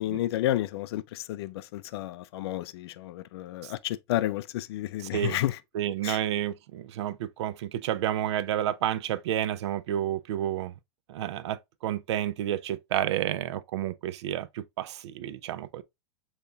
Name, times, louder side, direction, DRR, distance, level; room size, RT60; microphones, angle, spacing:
voice 1, 0.0-5.6 6.0-6.2, left 14 dB, 65° left, 0.4 m, -31 dB
voice 2, 5.7-10.7 11.1-15.8, right 11 dB, 80° right, 0.4 m, -30 dB
6.8 x 2.9 x 2.3 m
supercardioid pair, 150°, 14 cm